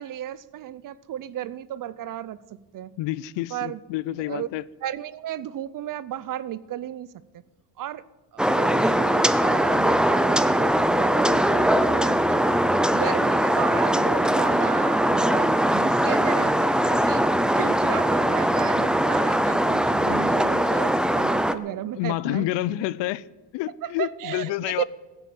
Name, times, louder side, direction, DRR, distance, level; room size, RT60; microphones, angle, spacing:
voice 1, 0.0-2.4 2.7-2.9 3.5-3.8 4.1-4.5 4.8-7.1 7.8-8.0 8.3-12.6 12.9-17.2 17.6-22.9 23.8-24.8, right 12 dB, 50° right, 0.7 m, -34 dB
voice 2, 3.0-4.6 19.8-20.3 22.0-23.2 23.5-24.8, left 16 dB, 85° left, 0.6 m, -29 dB
sound 1, 8.4-21.5, right 1 dB, ahead, 0.5 m, -21 dB
15.5 x 8.1 x 8.5 m
cardioid pair, 115°, 42 cm